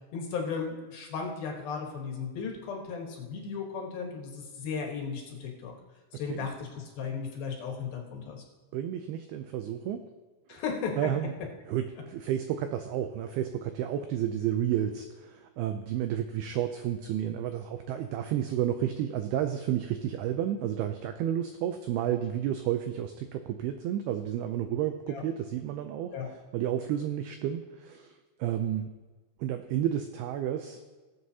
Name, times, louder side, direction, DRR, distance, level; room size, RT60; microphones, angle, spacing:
voice 1, 0.1-5.7 6.1-8.4 10.5-11.0 25.1-25.2 26.1-26.3, left 5 dB, 65° left, 1 dB, 2.9 m, -35 dB
voice 2, 8.7-10.0 11.0-11.3 11.7-26.1 26.5-28.1 28.4-28.9 29.4-30.8, right 10 dB, 85° right, 7 dB, 2.2 m, -31 dB
20.5 x 7.9 x 2.8 m, 1.3 s
omnidirectional pair, 5.2 m